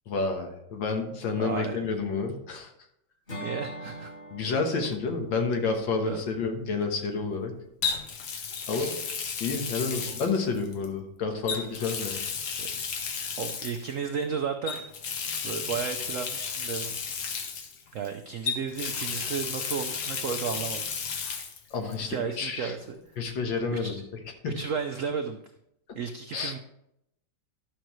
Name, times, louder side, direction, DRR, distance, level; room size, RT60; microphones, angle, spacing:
voice 1, 0.1-2.7 4.3-7.5 8.7-8.9 9.4-12.2 21.7-22.8 23.2-24.0 24.4-24.6 26.3-26.5, left 4 dB, 80° left, 4 dB, 1.9 m, -29 dB
voice 2, 1.4-1.8 3.4-4.1 6.0-6.2 8.7-8.9 12.6-12.7 13.4-14.8 15.4-17.0 17.9-20.9 22.1-23.0 23.7-24.0 24.4-25.4 26.0-26.6, right 6 dB, 80° right, 6 dB, 0.7 m, -33 dB
Acoustic guitar / Strum, 3.3-7.4, equal, 30° left, 1.6 m, -44 dB
Water tap faucet, 4.9-5.1 7.8-10.9 11.4-13.9 14.7-18.1 18.5-21.6 21.9-22.0 23.6-23.7, left 6 dB, 65° left, 1.4 m, -33 dB
11.5 x 6.3 x 3.0 m, 0.80 s
omnidirectional pair, 2.0 m